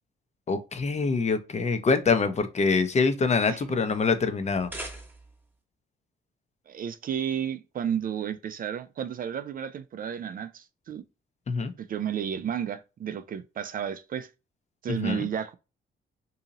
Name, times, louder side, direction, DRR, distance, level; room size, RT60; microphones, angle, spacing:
voice 1, 0.5-4.7 11.5-11.7 14.9-15.3, left 4 dB, 35° left, 0.7 m, -25 dB
voice 2, 3.5-3.8 6.7-11.0 11.8-14.3 14.8-15.6, right 8 dB, 45° right, 0.4 m, -32 dB
sound 1, 4.4-5.5, right 1 dB, 10° right, 0.9 m, -41 dB
2.8 x 2.8 x 3.7 m
cardioid pair, 90°, 20 cm